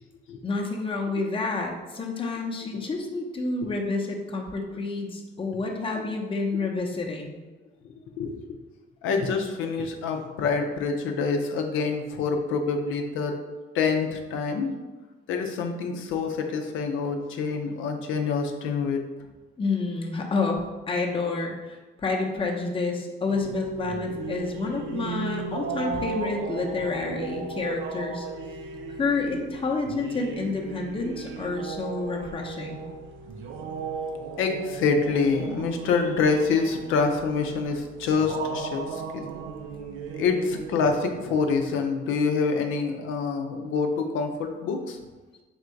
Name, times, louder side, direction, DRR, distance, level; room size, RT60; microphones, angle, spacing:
voice 1, 0.4-7.3 19.6-20.6 20.9-28.3 29.0-32.8, left 3 dB, 25° left, 1 dB, 0.7 m, -29 dB
voice 2, 9.0-13.4 13.7-14.7 15.3-19.0 34.4-39.2 40.2-45.0, left 5 dB, 90° left, 4 dB, 0.6 m, -26 dB
sound 1, 23.3-41.8, right 4 dB, 80° right, 0.5 m, -36 dB
3.6 x 2.6 x 4.4 m, 1.2 s
cardioid pair, 90°, 20 cm